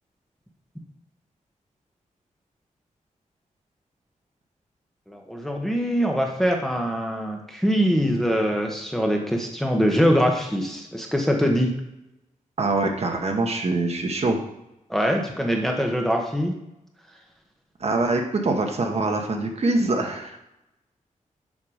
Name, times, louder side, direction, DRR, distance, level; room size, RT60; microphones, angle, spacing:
voice 1, 5.1-11.7 14.9-16.6 17.1-17.2, equal, 5° left, 1 dB, 1.2 m, -23 dB
voice 2, 12.6-14.4 17.8-20.4, right 2 dB, 50° right, 2 dB, 1.2 m, -24 dB
7.4 x 5.9 x 5.0 m, 0.88 s
wide cardioid pair, 130°, 14 cm